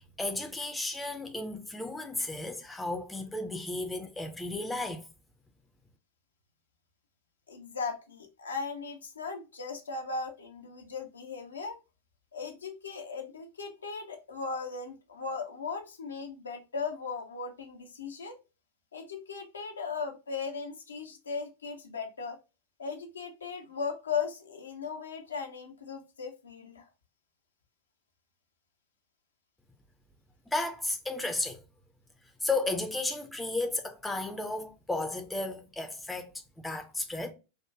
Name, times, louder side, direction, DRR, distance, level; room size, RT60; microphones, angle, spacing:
voice 1, 0.0-5.1 30.5-31.6 32.4-37.3, left 2 dB, 5° left, 0.5 m, -34 dB
voice 2, 7.5-11.8 12.3-18.4 18.9-22.4 22.8-26.9, left 5 dB, 70° left, 0.6 m, -37 dB
4.7 x 2.2 x 2.3 m
figure-of-eight pair, 90°, 0 cm